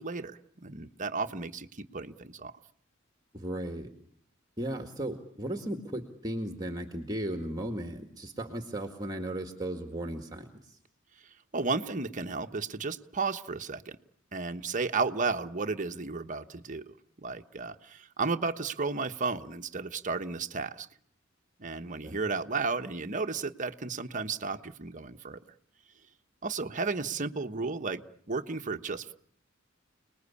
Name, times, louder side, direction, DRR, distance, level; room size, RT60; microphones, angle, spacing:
voice 1, 0.0-2.5 11.5-14.0 14.3-20.9 21.6-25.4 26.4-28.0 28.3-29.1, right 4 dB, 40° right, 6 dB, 1.2 m, -33 dB
voice 2, 3.3-3.9 4.6-10.8 22.0-22.2, right 1 dB, 20° right, 5 dB, 1.9 m, -36 dB
29.5 x 20.5 x 8.5 m, 0.65 s
head